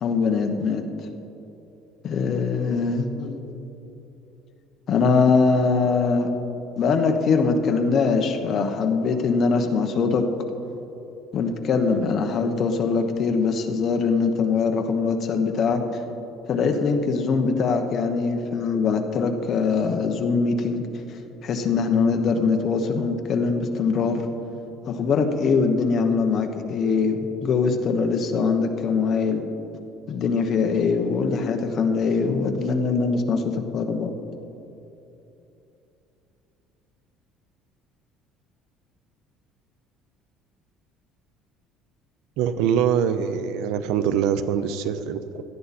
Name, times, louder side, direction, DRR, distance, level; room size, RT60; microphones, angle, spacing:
voice 1, 0.0-0.9 2.0-3.6 4.9-6.3 6.8-10.2 11.3-15.8 16.5-20.8 21.4-24.2 24.9-29.4 30.1-34.1, left 5 dB, 35° left, 5 dB, 1.0 m, -22 dB
voice 2, 42.4-45.4, right 8 dB, 75° right, 12 dB, 0.7 m, -24 dB
17.5 x 12.0 x 4.3 m, 3.0 s
cardioid pair, 170°, 0 cm